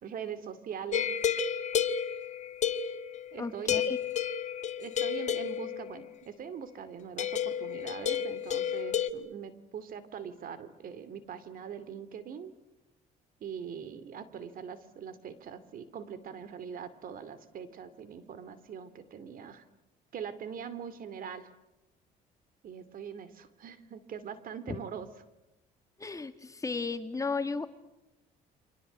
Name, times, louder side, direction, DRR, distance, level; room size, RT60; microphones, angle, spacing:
voice 1, 0.0-1.1 3.3-3.8 4.8-12.5 13.4-19.6 20.1-21.5 22.6-25.1, right 7 dB, 55° right, 13 dB, 2.6 m, -42 dB
sound 1, 0.9-3.3 3.7-6.0 7.2-9.1, left 8 dB, 45° left, 1.3 m, -31 dB
voice 2, 3.4-4.0 24.7-24.8 26.0-27.7, left 4 dB, 20° left, 9 dB, 2.0 m, -34 dB
29.0 x 25.0 x 8.2 m, 0.93 s
cardioid pair, 110°, 17 cm